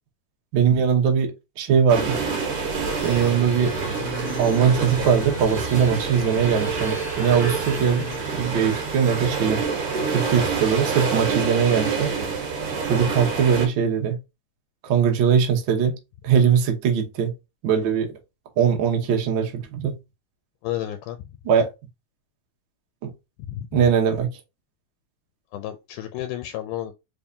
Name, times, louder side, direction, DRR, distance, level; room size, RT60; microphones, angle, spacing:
voice 1, 0.5-2.2 3.0-3.7 4.4-9.6 10.1-12.1 12.9-14.2 14.8-15.9 16.2-17.3 17.6-18.1 18.6-19.9 21.4-21.7 23.0-23.1 23.7-24.3, right 7 dB, 75° right, 1.1 m, -21 dB
sound 1, 1.9-13.7, right 5 dB, 55° right, 1.8 m, -27 dB
sound 2, 3.0-8.2, left 1 dB, 30° left, 1.4 m, -36 dB
voice 2, 20.6-21.3 23.4-23.8 25.5-26.9, left 12 dB, 85° left, 2.0 m, -32 dB
4.6 x 3.6 x 2.7 m
omnidirectional pair, 3.6 m